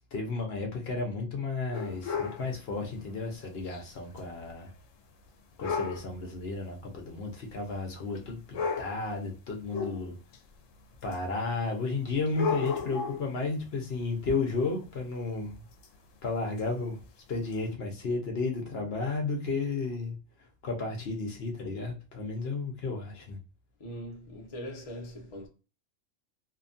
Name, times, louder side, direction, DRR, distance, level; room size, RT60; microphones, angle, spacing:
voice 1, 0.0-4.7 5.6-10.1 11.0-15.6 16.2-17.0 17.3-20.1 20.6-23.4, left 3 dB, 60° left, 0.9 m, -33 dB
sound 1, 1.7-2.5 3.7-3.8 4.2-4.3 5.6-6.1 7.1-7.2 8.2-8.3 8.5-9.1 9.7-10.4 11.1-11.2 12.3-13.3 15.8-15.9 16.6-16.7 17.5-17.6, left 5 dB, 85° left, 1.0 m, -32 dB
voice 2, 23.8-25.5, equal, 35° left, 0.6 m, -41 dB
2.8 x 2.2 x 2.5 m
omnidirectional pair, 1.3 m